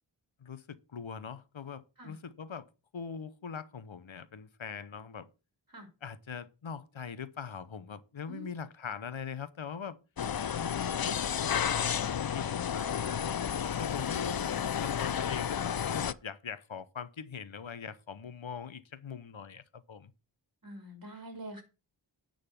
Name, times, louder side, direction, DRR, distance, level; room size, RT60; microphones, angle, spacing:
voice 1, 0.4-2.6 2.9-5.3 6.0-10.0 10.5-20.1, left 6 dB, 75° left, 0.9 m, -42 dB
sound 1, 10.2-16.1, left 8 dB, 50° left, 0.5 m, -32 dB
voice 2, 20.6-21.6, right 1 dB, 45° right, 3.5 m, -45 dB
10.0 x 4.0 x 6.9 m
wide cardioid pair, 45°, 47 cm